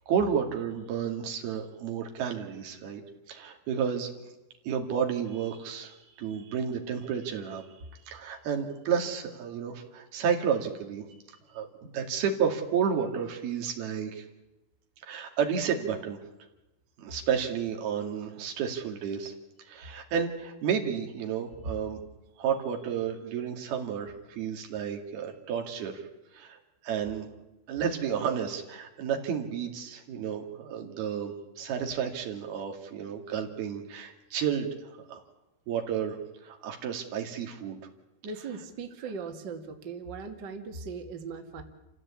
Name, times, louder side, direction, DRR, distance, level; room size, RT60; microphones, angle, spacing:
voice 1, 0.1-3.0 3.3-4.1 4.7-7.7 7.9-11.0 11.5-14.2 15.0-16.2 17.0-19.3 19.7-22.0 22.4-26.0 26.3-26.6 26.8-27.3 27.7-35.2 35.7-36.2 36.4-37.8, right 7 dB, 90° right, 3 dB, 4.3 m, -31 dB
voice 2, 38.2-41.6, right 5 dB, 35° right, 4 dB, 2.1 m, -39 dB
28.5 x 15.5 x 8.5 m, 1.0 s
omnidirectional pair, 4.3 m